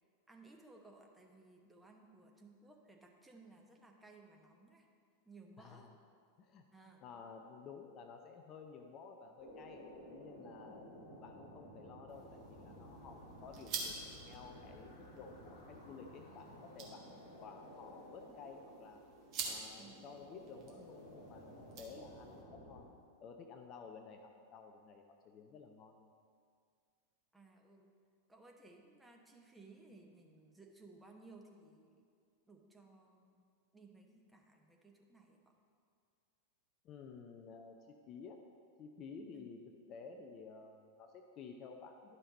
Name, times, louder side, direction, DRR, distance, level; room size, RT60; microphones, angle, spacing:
voice 1, 0.3-4.9 5.2-5.9 6.7-7.0 19.8-20.1 27.3-27.9 28.3-32.0 32.5-35.5 39.3-39.5, right 3 dB, 5° right, 1 dB, 1.0 m, -60 dB
voice 2, 5.6-5.9 6.4-6.6 7.0-9.8 10.1-10.9 11.2-14.0 14.2-19.0 19.4-22.9 23.2-26.1 36.8-38.4 38.8-39.6 39.9-42.2, left 5 dB, 35° left, 4 dB, 0.6 m, -53 dB
sound 1, 9.4-22.9, equal, 60° left, 1.5 m, -55 dB
sound 2, 12.1-22.4, right 4 dB, 40° right, 1.5 m, -49 dB
11.0 x 5.7 x 4.1 m, 2.2 s
figure-of-eight pair, 90°, 0 cm